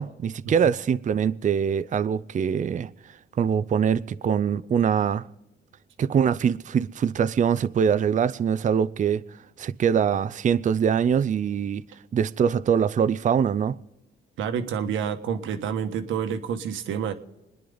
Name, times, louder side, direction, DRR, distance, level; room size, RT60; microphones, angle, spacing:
voice 1, 0.0-2.9 3.4-5.3 6.0-9.2 9.6-11.8 12.1-13.8, right 7 dB, 40° right, 0.5 m, -23 dB
voice 2, 14.4-17.1, right 7 dB, 80° right, 1.4 m, -28 dB
26.0 x 10.5 x 3.9 m
cardioid pair, 90°, 20 cm